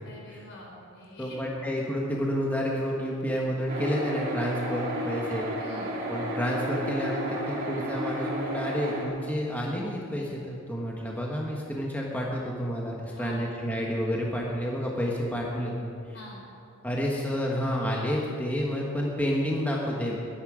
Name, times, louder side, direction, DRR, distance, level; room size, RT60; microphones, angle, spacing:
voice 1, 0.0-1.5 5.6-6.0 13.0-13.4 16.1-16.4, left 1 dB, 60° left, -2 dB, 4.4 m, -45 dB
voice 2, 1.2-5.5 6.1-15.9 16.8-20.2, equal, 10° left, -3 dB, 1.4 m, -30 dB
sound 1, 3.7-9.1, right 1 dB, 45° right, 2.8 m, -32 dB
21.0 x 10.0 x 5.0 m, 2.6 s
head